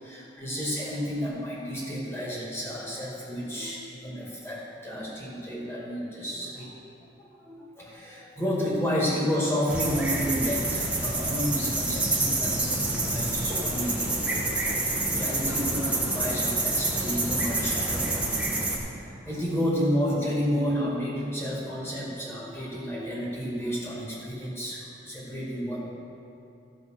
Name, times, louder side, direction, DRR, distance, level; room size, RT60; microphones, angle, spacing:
voice 1, 0.0-6.7 7.2-14.3 14.6-18.3 18.8-25.8, equal, 15° left, -6 dB, 2.2 m, -31 dB
sound 1, 9.7-18.8, right 2 dB, 5° right, 1.1 m, -27 dB
14.0 x 5.2 x 6.2 m, 2.6 s
head